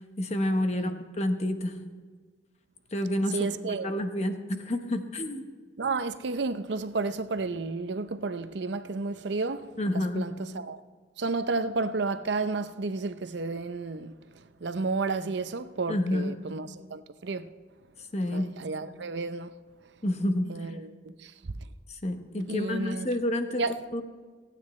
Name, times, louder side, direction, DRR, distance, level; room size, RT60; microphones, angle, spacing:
voice 1, 0.2-1.7 2.9-3.4 3.8-5.4 9.8-10.2 15.9-16.3 18.1-18.5 20.0-20.5 21.9-23.6 23.9-24.0, left 1 dB, 35° left, 1.1 m, -28 dB
voice 2, 3.3-4.0 5.8-10.8 11.2-17.5 18.3-19.5 20.5-21.5 22.5-23.1 23.6-23.7, right 3 dB, 70° right, 0.6 m, -32 dB
28.0 x 9.4 x 3.2 m
head